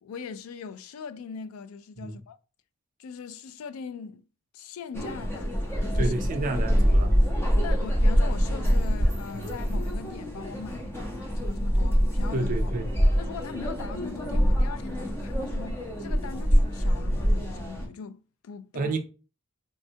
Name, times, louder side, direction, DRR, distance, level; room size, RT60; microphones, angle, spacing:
voice 1, 0.0-2.4 3.0-4.3 4.5-6.2 7.6-11.0 11.4-12.7 13.2-18.9, left 5 dB, 85° left, 0.3 m, -41 dB
sound 1, 4.9-17.9, equal, 10° left, 0.5 m, -25 dB
voice 2, 6.0-7.1 9.4-9.5 12.3-12.9 18.7-19.0, right 2 dB, 40° right, 0.4 m, -30 dB
3.4 x 2.1 x 2.7 m
head